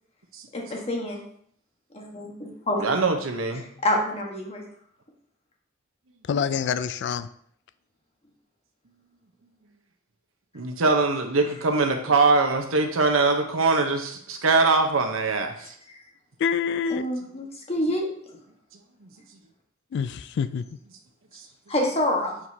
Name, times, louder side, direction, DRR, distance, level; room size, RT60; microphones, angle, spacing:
voice 1, 0.5-1.2 1.9-2.9 3.8-4.6 15.9-16.0 16.9-18.1 21.7-22.3, left 1 dB, 30° left, 0 dB, 1.3 m, -27 dB
voice 2, 2.8-3.6 10.5-15.7, right 3 dB, 85° right, 5 dB, 0.9 m, -22 dB
voice 3, 6.3-7.3 16.4-17.0 19.9-20.6, left 7 dB, 60° left, 13 dB, 0.3 m, -26 dB
7.5 x 4.7 x 2.8 m, 0.64 s
head